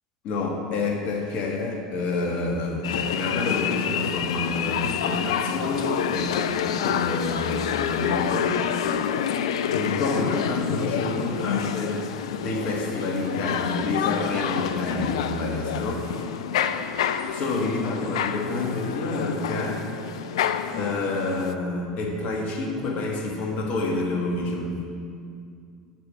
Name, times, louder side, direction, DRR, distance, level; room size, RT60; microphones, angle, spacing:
voice 1, 0.2-6.4 6.7-8.6 9.7-12.0 12.4-16.1 17.3-19.8 20.7-24.8, left 2 dB, 45° left, 1 dB, 1.5 m, -28 dB
sound 1, 2.8-21.5, left 8 dB, 65° left, 0.4 m, -28 dB
7.6 x 7.1 x 5.9 m, 2.3 s
figure-of-eight pair, 75°, 3 cm